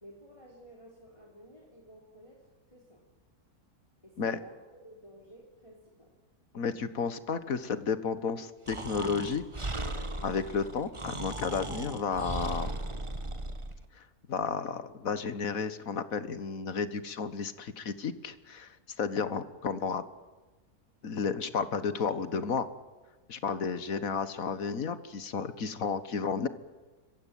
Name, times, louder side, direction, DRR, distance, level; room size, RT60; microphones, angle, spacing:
voice 1, 0.0-3.0 4.0-6.1, equal, 20° left, -1 dB, 3.9 m, -53 dB
voice 2, 6.5-9.7 10.2-12.8 14.0-14.1 14.3-20.0 21.0-22.7 23.3-26.5, left 5 dB, 65° left, 14 dB, 1.8 m, -32 dB
Breathing, 8.7-13.8, right 2 dB, 20° right, 1.5 m, -37 dB
25.5 x 15.5 x 9.2 m, 1.3 s
omnidirectional pair, 1.6 m